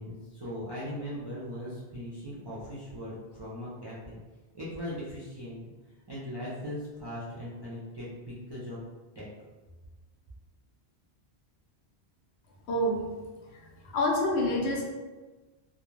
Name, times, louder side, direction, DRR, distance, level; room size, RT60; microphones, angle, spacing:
voice 1, 0.0-4.2 4.5-5.6 6.1-8.8 9.1-9.3, equal, 40° right, -9 dB, 0.3 m, -39 dB
voice 2, 12.7-13.1 13.5-14.8, left 1 dB, 80° left, -1 dB, 0.9 m, -28 dB
2.3 x 2.1 x 3.1 m, 1.2 s
omnidirectional pair, 1.1 m